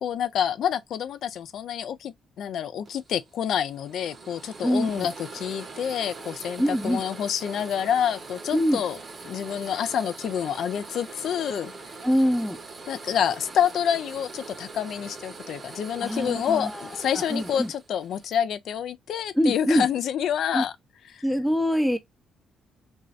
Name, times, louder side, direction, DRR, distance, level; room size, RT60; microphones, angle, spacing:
voice 1, 0.0-9.0 9.2-11.7 12.9-20.7 21.1-21.2, left 9 dB, 70° left, 0.3 m, -28 dB
sound 1, 2.8-18.4, right 3 dB, 40° right, 0.8 m, -42 dB
voice 2, 4.6-5.1 6.6-7.0 8.5-8.8 12.0-12.6 16.0-16.9 17.1-17.7 19.4-19.9 20.5-20.7 21.2-22.0, equal, 5° left, 0.4 m, -24 dB
2.6 x 2.4 x 3.1 m
cardioid pair, 90°, 0 cm